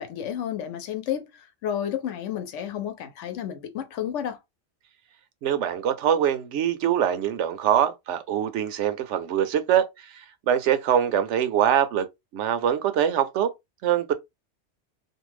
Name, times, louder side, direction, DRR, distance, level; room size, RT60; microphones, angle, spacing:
voice 1, 0.0-4.4, left 9 dB, 80° left, 0.9 m, -31 dB
voice 2, 5.4-12.1 12.3-13.5 13.8-14.1, right 9 dB, 80° right, 0.9 m, -23 dB
2.6 x 2.1 x 3.1 m
omnidirectional pair, 1.2 m